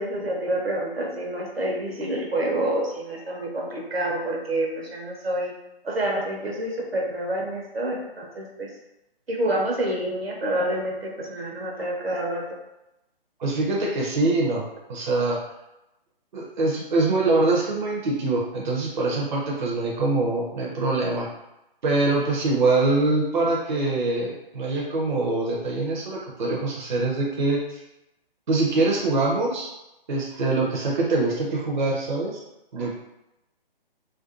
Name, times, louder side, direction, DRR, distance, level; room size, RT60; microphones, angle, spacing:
voice 1, 0.0-5.5 5.8-8.7 9.3-12.6, right 1 dB, 85° right, -1 dB, 0.8 m, -28 dB
voice 2, 13.4-15.4 16.3-21.3 21.8-27.8 28.5-29.7 30.1-32.4 32.7-33.0, right 2 dB, 55° right, -3 dB, 0.5 m, -24 dB
2.5 x 2.3 x 2.4 m, 0.92 s
figure-of-eight pair, 140°, 30 cm